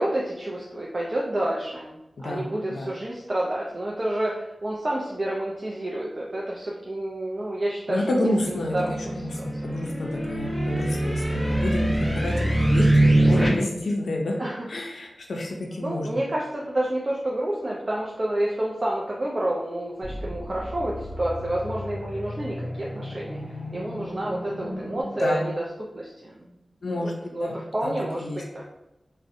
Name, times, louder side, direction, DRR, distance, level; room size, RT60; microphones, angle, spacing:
voice 1, 0.0-9.7 14.4-14.7 15.6-23.4 23.7-26.5 26.9-28.7, right 1 dB, 40° right, -4 dB, 0.3 m, -29 dB
voice 2, 2.2-2.9 7.9-14.4 14.7-16.2 25.1-25.4 26.8-27.1 27.4-28.4, left 1 dB, 85° left, 0 dB, 0.4 m, -29 dB
sound 1, 8.5-13.5, right 1 dB, ahead, 0.7 m, -23 dB
sound 2, 20.0-25.0, left 1 dB, 40° left, 0.7 m, -36 dB
2.6 x 2.0 x 2.4 m, 0.93 s
wide cardioid pair, 80°, 0 cm